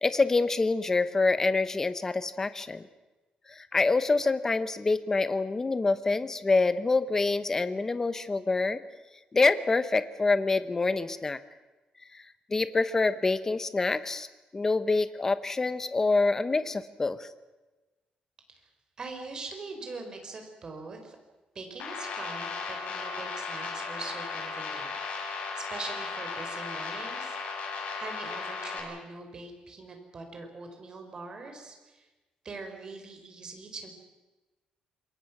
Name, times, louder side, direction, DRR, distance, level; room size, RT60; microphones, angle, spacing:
voice 1, 0.0-2.8 3.5-8.8 9.3-11.4 12.1-12.2 12.5-14.3 14.5-17.3, left 3 dB, 20° left, 12 dB, 1.0 m, -26 dB
voice 2, 19.0-21.2 21.5-27.4 27.9-32.1 32.4-33.9, right 3 dB, 30° right, 4 dB, 4.5 m, -42 dB
sound 1, 21.8-28.8, left 4 dB, 70° left, 6.5 m, -36 dB
27.0 x 22.5 x 6.1 m, 1.1 s
cardioid pair, 165°, 3 cm